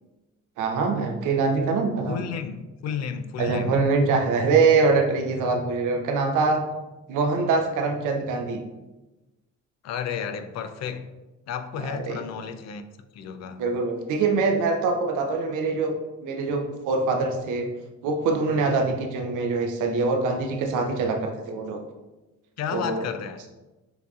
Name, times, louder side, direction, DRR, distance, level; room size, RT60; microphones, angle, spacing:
voice 1, 0.6-2.2 3.4-6.6 7.1-8.6 11.9-12.2 13.6-15.9 16.2-17.7 18.0-21.8 22.7-23.1, right 4 dB, 85° right, 0.7 m, -24 dB
voice 2, 2.1-3.8 9.8-11.1 11.5-12.8 13.1-13.6 22.6-23.5, left 7 dB, 60° left, 0.4 m, -32 dB
6.7 x 2.7 x 2.4 m
cardioid pair, 90°, 30 cm